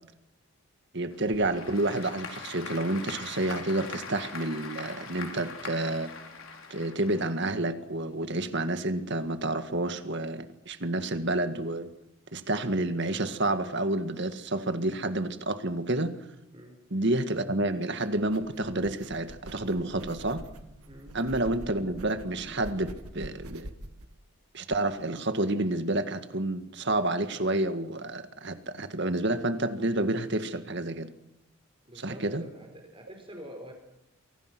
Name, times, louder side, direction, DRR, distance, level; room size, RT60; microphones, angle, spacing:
voice 1, 0.9-6.1 6.7-11.9 12.3-16.3 16.9-20.4 21.1-23.7 24.5-31.1 32.0-32.4, right 2 dB, 50° right, 1.9 m, -29 dB
Applause / Crowd, 1.1-7.7, left 4 dB, 65° left, 4.5 m, -42 dB
voice 2, 16.5-16.8 20.9-21.2 31.8-33.7, equal, 25° right, 4.4 m, -46 dB
sound 1, 18.0-24.1, right 1 dB, 90° right, 2.1 m, -46 dB
29.5 x 24.0 x 6.1 m
head